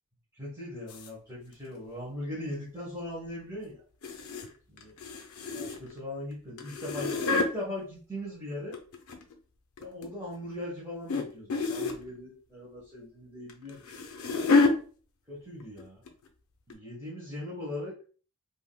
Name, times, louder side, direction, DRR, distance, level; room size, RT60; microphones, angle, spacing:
voice 1, 0.3-3.8 4.7-4.9 5.5-8.8 9.8-13.8 14.1-14.2 15.3-16.0 16.7-17.9, left 1 dB, 15° right, -7 dB, 1.0 m, -39 dB
sound 1, 0.9-1.1 4.0-4.5 4.8-6.0 6.6-7.5 8.5-9.3 9.8-10.1 11.1-11.2 11.5-12.0 13.5-14.7 15.6-16.1 16.7-16.8, left 3 dB, 70° left, 0.5 m, -28 dB
3.4 x 2.6 x 2.2 m, 0.40 s
head